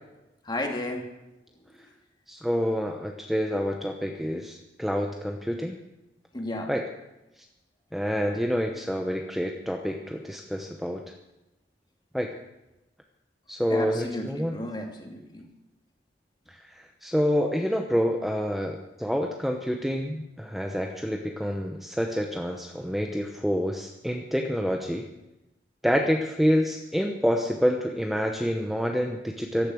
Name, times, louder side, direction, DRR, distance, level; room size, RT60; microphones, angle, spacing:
voice 1, 0.4-1.1 6.3-6.7 13.7-15.4, left 1 dB, 25° left, 2 dB, 2.4 m, -33 dB
voice 2, 2.3-5.8 6.7-6.9 7.9-11.0 12.1-12.3 13.5-14.6 16.5-25.1 25.8-29.7, equal, ahead, 3 dB, 0.9 m, -27 dB
15.5 x 12.0 x 6.4 m, 0.96 s
head